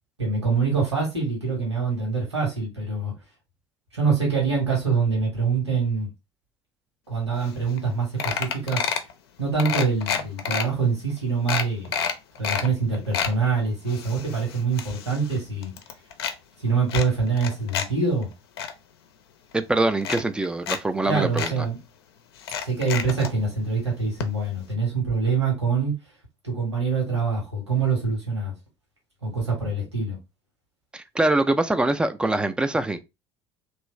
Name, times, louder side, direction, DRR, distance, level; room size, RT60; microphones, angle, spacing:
voice 1, 0.2-3.1 3.9-6.1 7.1-8.9 9.4-11.9 12.4-15.7 16.6-18.3 21.0-21.8 22.6-25.9 26.4-28.5 29.2-30.2, right 4 dB, 80° right, 1.5 m, -25 dB
sound 1, 7.5-7.6 7.8-7.9 8.2-9.1 9.6-10.6 11.1-11.2 11.5-12.7 12.9-13.3 13.9-15.4 15.6-16.3 16.9-17.9 18.2-18.7 19.5-19.6 20.0-20.8 21.0-21.1 21.4-21.5 22.4-23.3 24.2-24.3 24.6-24.7, left 7 dB, 65° left, 0.5 m, -28 dB
voice 2, 19.5-21.5 30.9-33.0, right 2 dB, 5° right, 0.4 m, -23 dB
3.0 x 2.6 x 3.0 m
figure-of-eight pair, 65°, 14 cm